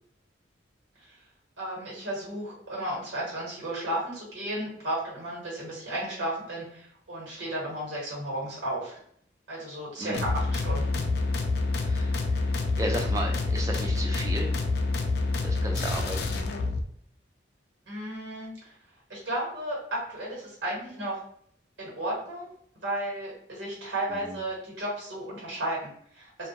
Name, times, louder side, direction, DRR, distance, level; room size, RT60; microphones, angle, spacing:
voice 1, 1.6-9.0 9.5-11.0 17.9-18.7 19.1-21.2 21.8-26.5, right 1 dB, 70° right, -4 dB, 1.1 m, -34 dB
sound 1, 10.1-16.8, left 3 dB, 60° left, 0.3 m, -27 dB
voice 2, 11.8-12.2 12.8-14.5 15.4-16.2, right 1 dB, 15° right, 1 dB, 0.4 m, -33 dB
2.2 x 2.2 x 2.7 m, 0.67 s
head